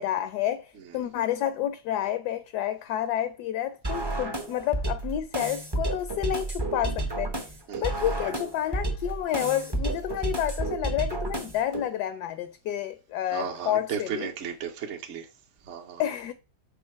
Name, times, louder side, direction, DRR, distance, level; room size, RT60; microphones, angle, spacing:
voice 1, 0.0-7.3 7.8-14.3 16.0-16.3, left 11 dB, 75° left, 1.0 m, -29 dB
sound 1, 3.8-11.8, right 2 dB, 30° right, 0.4 m, -31 dB
voice 2, 13.3-15.3 15.6-16.0, right 7 dB, 60° right, 0.8 m, -34 dB
5.6 x 3.6 x 5.5 m
omnidirectional pair, 2.0 m